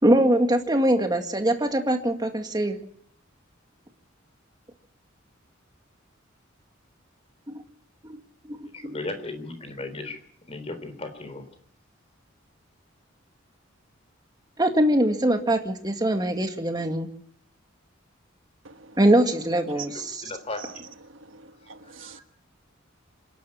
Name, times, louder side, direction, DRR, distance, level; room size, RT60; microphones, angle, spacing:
voice 1, 0.0-2.8 7.5-7.6 8.6-8.9 14.6-17.1 19.0-20.2, right 1 dB, 20° right, 2.0 m, -22 dB
voice 2, 8.7-10.2 10.5-11.4 19.7-20.9 22.0-22.2, left 2 dB, 30° left, 3.5 m, -36 dB
voice 3, 21.3-22.2, right 8 dB, 70° right, 1.5 m, -43 dB
26.5 x 11.5 x 8.6 m
head